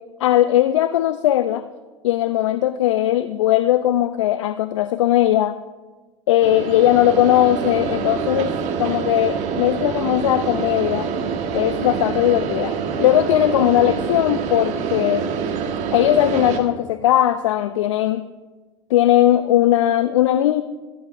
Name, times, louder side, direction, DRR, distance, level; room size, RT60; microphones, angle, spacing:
voice 1, 0.2-1.6 2.0-5.5 6.3-8.5 8.8-11.1 11.5-15.3 15.9-18.2 18.9-20.6, left 13 dB, 70° left, 12 dB, 0.5 m, -18 dB
sound 1, 6.4-16.6, right 6 dB, 45° right, 1.5 m, -26 dB
14.0 x 14.0 x 2.6 m, 1.3 s
hypercardioid pair, 90°, 16 cm